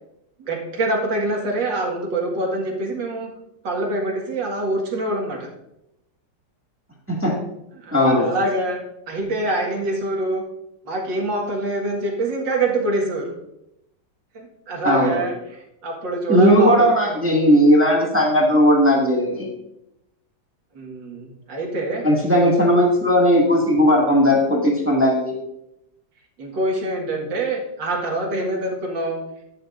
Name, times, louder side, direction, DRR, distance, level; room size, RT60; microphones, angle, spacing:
voice 1, 0.4-3.3 3.6-5.5 7.8-8.8 9.1-10.4 10.8-13.3 14.3-16.8 20.7-22.1 26.4-29.2, right 2 dB, 90° right, 0 dB, 2.5 m, -25 dB
voice 2, 7.9-8.3 14.8-15.2 16.3-19.5 22.0-25.3, equal, 5° right, -3 dB, 1.9 m, -17 dB
11.5 x 11.0 x 2.6 m, 0.85 s
omnidirectional pair, 1.9 m